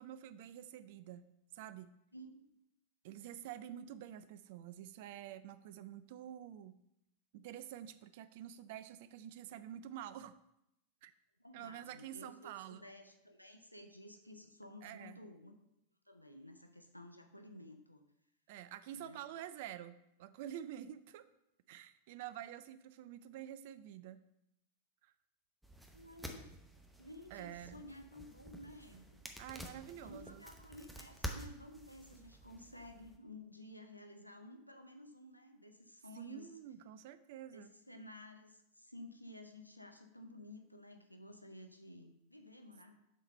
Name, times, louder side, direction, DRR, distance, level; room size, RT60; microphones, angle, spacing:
voice 1, 0.0-1.9 3.0-6.7 7.3-10.3 11.0-11.1 11.5-12.8 14.8-15.2 18.5-21.3 21.7-24.2 25.0-25.1 27.3-27.8 29.4-30.4 36.1-37.7, right 11 dB, 50° right, 14 dB, 0.4 m, -48 dB
voice 2, 2.1-2.5 11.4-15.7 16.1-18.1 18.9-19.2 25.9-26.6 27.0-29.2 30.0-36.5 37.5-43.0, left 1 dB, 90° left, 6 dB, 0.6 m, -54 dB
sound 1, 25.6-33.2, right 1 dB, 5° right, 0.8 m, -50 dB
7.4 x 4.1 x 5.2 m, 0.81 s
figure-of-eight pair, 90°, 0 cm